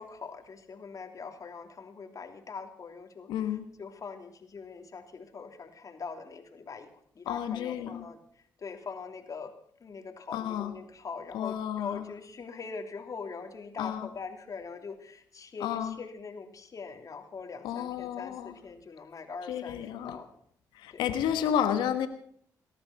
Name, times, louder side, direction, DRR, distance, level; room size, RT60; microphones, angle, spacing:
voice 1, 0.0-8.2 8.6-9.5 9.8-20.3 20.9-21.1, left 5 dB, 50° left, 6 dB, 3.0 m, -42 dB
voice 2, 3.3-3.6 7.3-8.0 10.3-10.7 11.3-12.1 13.8-14.1 15.6-16.0 17.6-18.5 19.5-20.2 20.7-22.1, left 9 dB, 90° left, 9 dB, 1.3 m, -31 dB
18.5 x 13.0 x 5.9 m, 0.66 s
supercardioid pair, 65°, 8 cm